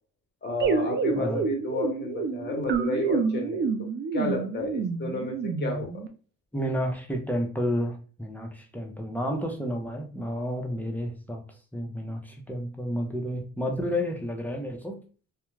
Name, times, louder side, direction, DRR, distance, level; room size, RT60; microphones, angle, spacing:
voice 1, 0.4-6.0, left 3 dB, 35° left, 2 dB, 1.0 m, -31 dB
sound 1, 0.6-6.1, right 5 dB, 40° right, 0.4 m, -28 dB
voice 2, 1.1-1.5 6.5-11.4 11.7-15.0, equal, 5° left, 1 dB, 0.6 m, -31 dB
2.3 x 2.2 x 3.1 m, 0.38 s
cardioid pair, 90°, 30 cm